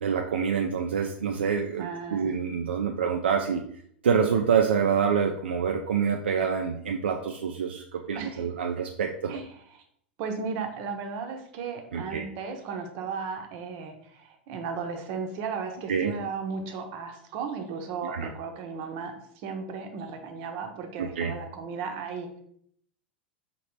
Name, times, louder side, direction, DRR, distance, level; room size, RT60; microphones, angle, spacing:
voice 1, 0.0-3.6 4.0-9.4 11.9-12.3 15.9-16.1 18.0-18.3 21.0-21.3, right 6 dB, 75° right, 2 dB, 0.3 m, -26 dB
voice 2, 1.8-2.3 8.1-8.4 9.3-9.4 10.2-22.4, right 5 dB, 50° right, 4 dB, 0.8 m, -35 dB
5.1 x 2.9 x 3.0 m, 0.66 s
figure-of-eight pair, 90°, 6 cm